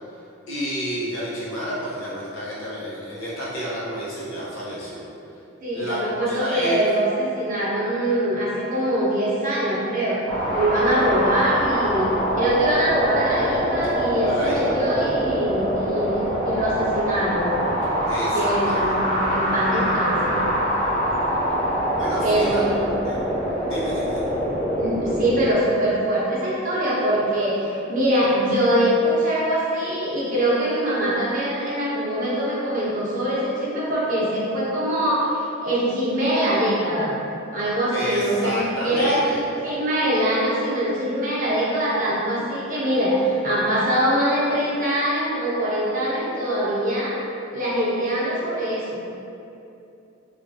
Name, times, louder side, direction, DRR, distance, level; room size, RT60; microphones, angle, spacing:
voice 1, 0.5-5.1 5.7-6.8 13.0-13.1 14.2-14.8 18.1-18.9 22.0-22.6 23.0-23.2 23.6-24.3 37.9-39.4, equal, 75° left, -7 dB, 0.8 m, -30 dB
voice 2, 5.6-10.2 10.5-12.1 12.4-17.5 18.3-19.0 19.3-20.4 22.2-22.8 24.7-37.1 37.5-47.2 47.5-49.0, right 1 dB, 40° right, -7 dB, 0.7 m, -23 dB
sound 1, 10.3-25.5, equal, 5° left, 1.1 m, -24 dB
3.3 x 2.3 x 2.6 m, 2.7 s
head